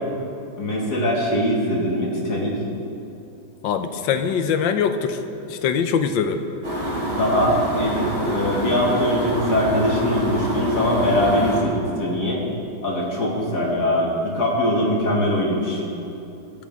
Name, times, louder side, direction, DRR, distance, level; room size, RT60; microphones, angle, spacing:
voice 1, 0.6-2.5 7.1-12.4 12.8-15.8, left 1 dB, 55° left, -4 dB, 2.8 m, -22 dB
voice 2, 3.6-5.2 5.5-6.4, left 7 dB, 75° left, 8 dB, 1.5 m, -22 dB
sound 1, 6.6-11.6, right 1 dB, 55° right, 3.4 m, -26 dB
17.5 x 12.5 x 3.7 m, 2.7 s
omnidirectional pair, 2.1 m